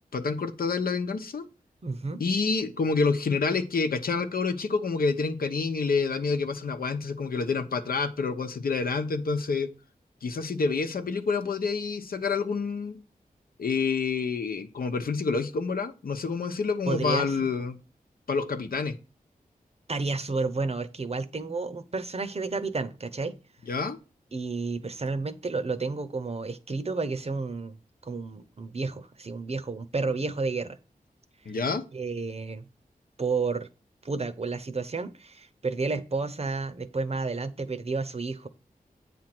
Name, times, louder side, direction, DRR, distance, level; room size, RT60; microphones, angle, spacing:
voice 1, 0.1-1.5 2.2-9.7 10.2-13.0 13.6-17.8 18.3-19.0 23.7-24.0 31.4-31.8, left 4 dB, 75° left, 0.9 m, -28 dB
voice 2, 1.8-2.2 16.9-17.4 19.9-23.4 24.3-30.8 31.9-32.7 33.2-33.7 34.0-38.5, right 4 dB, 45° right, 0.8 m, -31 dB
8.7 x 3.4 x 6.0 m
wide cardioid pair, 80°, 15 cm